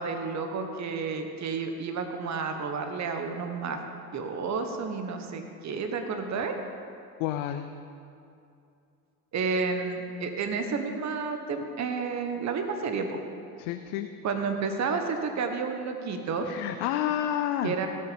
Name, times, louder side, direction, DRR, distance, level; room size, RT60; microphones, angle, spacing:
voice 1, 0.0-3.8 4.1-6.6 9.3-13.2 14.2-16.5 17.6-17.9, right 5 dB, 35° right, 5 dB, 1.3 m, -31 dB
voice 2, 7.2-7.7 13.6-14.1 16.4-17.7, left 11 dB, 65° left, 8 dB, 0.7 m, -29 dB
17.5 x 6.6 x 5.3 m, 2.6 s
hypercardioid pair, 65°, 46 cm